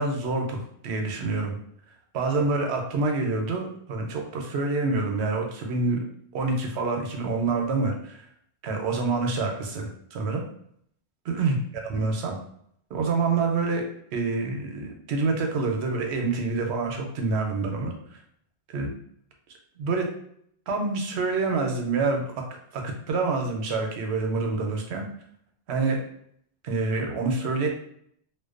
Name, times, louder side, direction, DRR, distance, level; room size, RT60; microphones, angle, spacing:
voice 1, 0.0-1.6 2.1-6.0 6.3-8.2 8.6-10.4 11.3-11.6 11.8-12.4 12.9-13.9 14.1-18.2 18.7-18.9 19.8-20.1 20.7-22.3 22.7-25.1 25.7-26.0 26.6-27.7, right 3 dB, 80° right, 2 dB, 0.8 m, -27 dB
2.5 x 2.1 x 2.4 m, 0.68 s
omnidirectional pair, 1.1 m